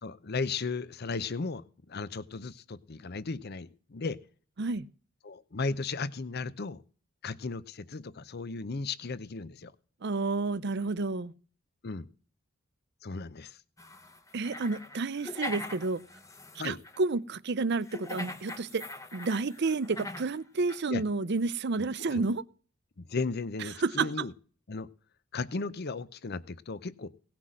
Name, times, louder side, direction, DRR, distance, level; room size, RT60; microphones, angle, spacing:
voice 1, 0.0-4.2 5.2-6.8 7.2-9.7 11.8-12.1 13.0-13.6 16.6-16.8 20.9-21.0 22.1-22.2 23.0-24.3 24.7-24.9 25.3-27.3, left 4 dB, 50° left, 0.7 m, -35 dB
voice 2, 10.0-11.3 14.3-16.0 16.6-18.8 19.1-22.4 23.8-24.3, right 3 dB, 55° right, 0.6 m, -30 dB
sound 1, 13.8-17.0 17.8-20.3 20.7-20.8, left 1 dB, 15° left, 1.1 m, -42 dB
18.0 x 6.0 x 7.5 m
head